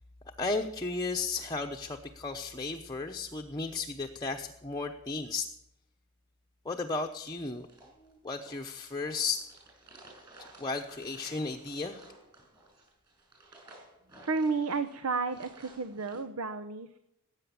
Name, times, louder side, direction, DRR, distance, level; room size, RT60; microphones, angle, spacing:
voice 1, 0.4-5.5 6.6-7.7 8.0-9.4 10.6-12.0, left 3 dB, 20° left, 2 dB, 0.9 m, -34 dB
sound 1, 7.6-16.2, right 2 dB, 20° right, 7.4 m, -56 dB
voice 2, 14.2-17.0, right 4 dB, 75° right, 10 dB, 0.9 m, -32 dB
19.0 x 9.1 x 7.1 m, 0.82 s
head